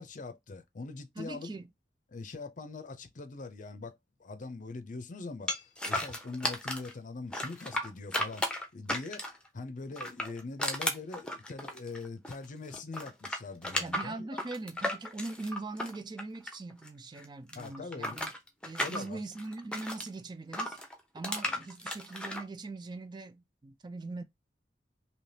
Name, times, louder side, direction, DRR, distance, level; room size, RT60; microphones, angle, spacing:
voice 1, 0.0-1.5 2.1-5.5 5.9-8.5 8.7-9.2 9.5-14.4 17.5-18.3 18.8-19.2, left 3 dB, 45° left, 0.6 m, -42 dB
voice 2, 1.2-1.7 13.8-18.3 18.6-20.8 21.1-24.2, right 3 dB, 25° right, 0.4 m, -41 dB
sound 1, 5.5-6.9 7.3-9.5 9.9-12.5 12.7-16.9 17.2-20.1 20.5-22.4, left 1 dB, 5° left, 0.7 m, -35 dB
3.3 x 2.8 x 2.7 m
head